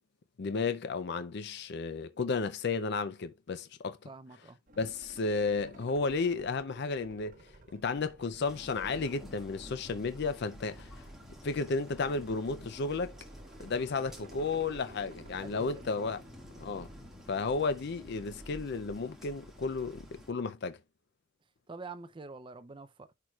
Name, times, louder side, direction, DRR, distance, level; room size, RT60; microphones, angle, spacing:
voice 1, 0.4-4.0 4.8-7.3 7.7-11.0 11.4-13.1 13.6-16.2 16.6-16.9 17.3-20.8, left 4 dB, 55° left, 0.5 m, -33 dB
voice 2, 4.1-4.6 15.4-16.1 21.7-23.1, right 3 dB, 25° right, 0.5 m, -46 dB
sound 1, 4.7-18.5, right 1 dB, 40° right, 1.0 m, -56 dB
sound 2, 8.4-20.3, equal, ahead, 1.8 m, -50 dB
10.5 x 4.5 x 2.3 m
head